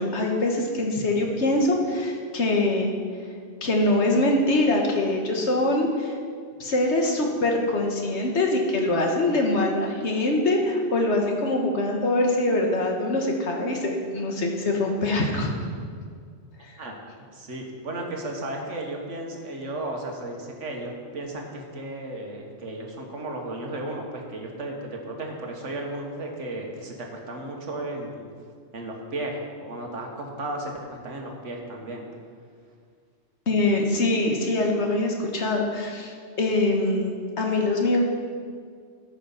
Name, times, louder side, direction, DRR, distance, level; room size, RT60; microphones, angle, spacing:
voice 1, 0.0-2.9 3.6-6.1 6.6-15.5 33.5-38.0, left 2 dB, 70° left, 1 dB, 1.6 m, -23 dB
voice 2, 17.3-28.3 28.7-32.1, right 1 dB, 85° right, 1 dB, 1.7 m, -34 dB
13.0 x 5.8 x 5.7 m, 2.1 s
omnidirectional pair, 1.2 m